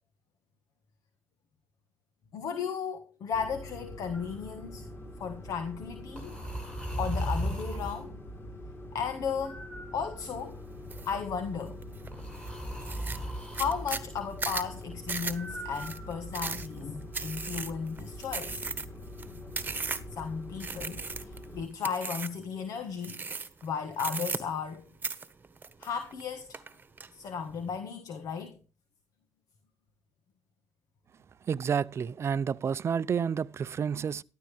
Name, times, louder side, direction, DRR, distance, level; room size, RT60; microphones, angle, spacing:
voice 1, 2.3-4.9 5.2-6.4 7.0-8.1 8.9-9.6 9.9-10.6 11.0-11.8 13.5-18.6 20.1-23.2 23.6-24.8 25.8-26.6 27.1-28.6, left 6 dB, 65° left, 1.6 m, -35 dB
sound 1, 3.3-21.7, left 1 dB, 35° left, 3.9 m, -44 dB
sound 2, 4.1-4.4 6.2-8.1 9.4-10.6 12.1-13.9 15.3-16.5, equal, 15° left, 7.9 m, -37 dB
sound 3, 10.9-11.2 11.6-12.1 12.5-12.6 12.8-20.2 20.6-21.4 21.8-22.4 23.0-23.6 23.9-24.8 25.0-26.2 26.5-27.1, right 4 dB, 30° right, 1.4 m, -36 dB
voice 2, 31.5-34.2, right 7 dB, 45° right, 0.5 m, -30 dB
13.5 x 13.0 x 3.4 m
supercardioid pair, 75°, 6 cm